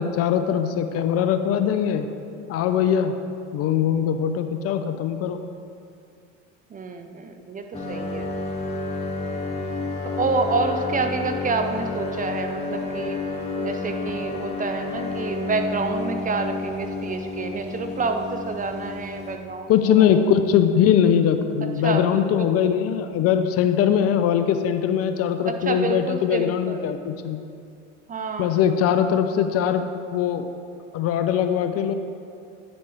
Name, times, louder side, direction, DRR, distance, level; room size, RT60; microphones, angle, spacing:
voice 1, 0.0-2.1 2.5-3.2 3.5-5.4 19.7-27.4 28.4-30.5 30.9-31.9, left 8 dB, 40° left, 9 dB, 0.6 m, -21 dB
voice 2, 6.7-8.3 10.1-13.2 13.6-20.1 21.8-22.7 25.5-26.8 28.1-28.6, right 3 dB, 20° right, 6 dB, 0.6 m, -28 dB
sound 1, 7.7-19.4, left 3 dB, 15° left, 1.8 m, -30 dB
10.0 x 6.9 x 3.4 m, 2.5 s
hypercardioid pair, 85°, 37 cm